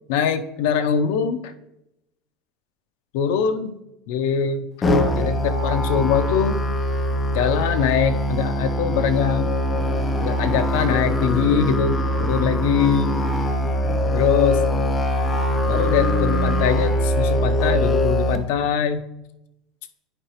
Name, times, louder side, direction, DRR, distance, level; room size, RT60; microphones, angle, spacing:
voice 1, 0.1-1.5 3.1-3.8 4.1-4.7 5.1-6.6 7.3-9.5 10.2-13.2 14.1-14.6 15.7-19.0, left 7 dB, 70° left, 10 dB, 0.5 m, -22 dB
Musical instrument, 4.8-18.4, equal, 15° left, 0.5 m, -22 dB
9.9 x 4.8 x 2.9 m, 0.88 s
cardioid pair, 170°, 0 cm